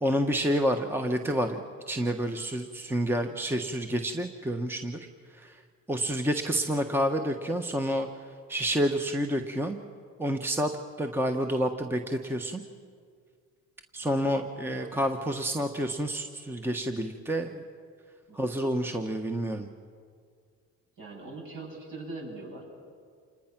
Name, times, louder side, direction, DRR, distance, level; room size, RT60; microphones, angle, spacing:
voice 1, 0.0-5.1 5.4-5.5 5.9-8.1 8.5-9.8 10.2-10.7 11.0-12.6 13.9-17.6 18.3-19.7, equal, 5° right, 5 dB, 1.2 m, -29 dB
voice 2, 21.0-22.6, right 2 dB, 55° right, -1 dB, 7.7 m, -42 dB
27.5 x 20.5 x 6.0 m, 2.1 s
supercardioid pair, 90°, 38 cm